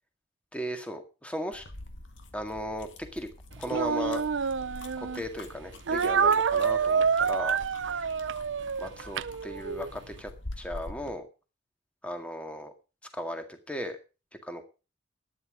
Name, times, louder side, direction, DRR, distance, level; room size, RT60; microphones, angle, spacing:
voice 1, 0.5-1.6 2.3-3.3 3.6-4.2 5.0-8.1 8.8-10.3 10.6-11.3 12.0-12.7 13.1-14.0 14.4-14.6, equal, 5° left, 6 dB, 2.0 m, -36 dB
sound 1, 1.5-11.2, left 2 dB, 70° left, 1.8 m, -46 dB
Speech, 3.7-5.2 5.9-9.9, right 6 dB, 70° right, 0.6 m, -27 dB
12.5 x 10.0 x 4.9 m, 0.31 s
head